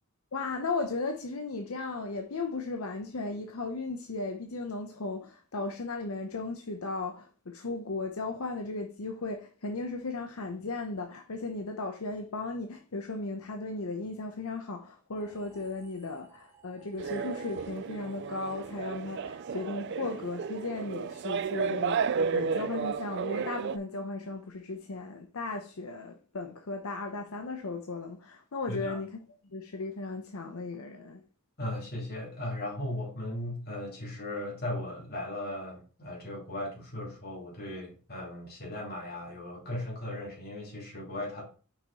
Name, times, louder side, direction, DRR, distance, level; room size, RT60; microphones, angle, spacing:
voice 1, 0.3-29.1 29.5-31.2, left 3 dB, 80° left, 0.8 m, -36 dB
sound 1, 15.1-20.5, right 8 dB, 10° right, 0.9 m, -55 dB
sound 2, 17.0-23.8, right 6 dB, 55° right, 0.4 m, -33 dB
voice 2, 28.7-29.0 31.6-41.4, left 1 dB, 45° left, 2.7 m, -37 dB
5.7 x 4.8 x 4.1 m
head